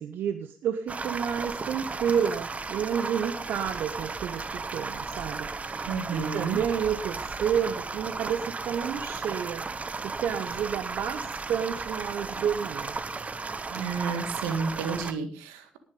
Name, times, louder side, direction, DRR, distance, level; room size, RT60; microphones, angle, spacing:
voice 1, 0.0-9.7 10.0-13.0, right 8 dB, 70° right, 9 dB, 0.9 m, -30 dB
sound 1, 0.9-15.1, right 4 dB, 40° right, 1.4 m, -35 dB
voice 2, 5.9-6.6 13.7-15.8, right 5 dB, 85° right, 8 dB, 1.9 m, -31 dB
18.5 x 7.2 x 5.4 m, 0.40 s
hypercardioid pair, 45°, 4 cm